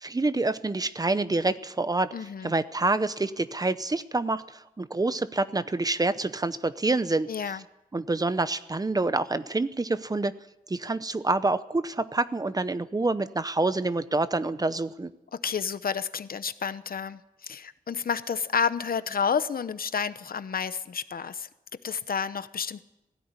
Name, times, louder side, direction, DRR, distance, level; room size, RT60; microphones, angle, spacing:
voice 1, 0.0-2.1 2.4-7.3 7.9-10.4 10.7-15.1, right 2 dB, 25° right, 14 dB, 0.7 m, -27 dB
voice 2, 2.1-2.5 7.3-7.6 15.3-21.5 21.8-22.8, left 6 dB, 75° left, 13 dB, 0.9 m, -30 dB
18.0 x 16.0 x 9.7 m, 0.94 s
wide cardioid pair, 145°, 15 cm